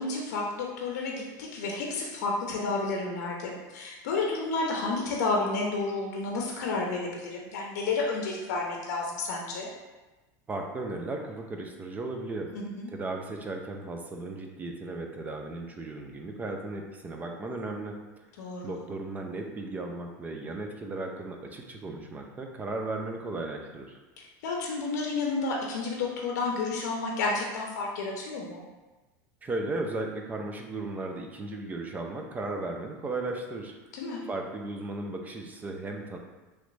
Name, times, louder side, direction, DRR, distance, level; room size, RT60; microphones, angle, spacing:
voice 1, 0.0-9.7 12.5-12.9 18.4-18.8 24.4-28.6 33.9-34.2, left 3 dB, 80° left, -1 dB, 0.6 m, -31 dB
voice 2, 10.5-12.5 12.9-18.0 18.6-24.0 29.4-33.8 34.3-36.2, right 2 dB, 20° right, 3 dB, 0.4 m, -35 dB
3.1 x 2.5 x 3.1 m, 1.1 s
supercardioid pair, 120°, 9 cm